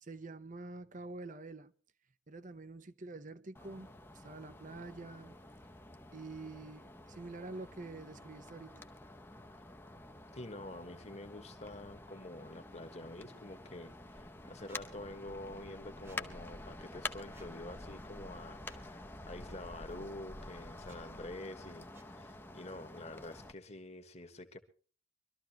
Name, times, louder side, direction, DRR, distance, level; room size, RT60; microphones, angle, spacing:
voice 1, 0.0-1.7 2.3-5.4 6.1-8.8, right 3 dB, 40° right, 0.8 m, -47 dB
sound 1, 3.5-23.5, left 2 dB, 10° left, 0.8 m, -49 dB
voice 2, 10.3-24.6, left 1 dB, 35° left, 1.4 m, -47 dB
Squeak, 14.7-14.8 16.0-16.2 17.3-17.5 18.6-18.9 19.9-20.0 20.8-21.0 21.9-22.1, right 2 dB, 15° right, 1.3 m, -62 dB
24.0 x 13.0 x 2.9 m
head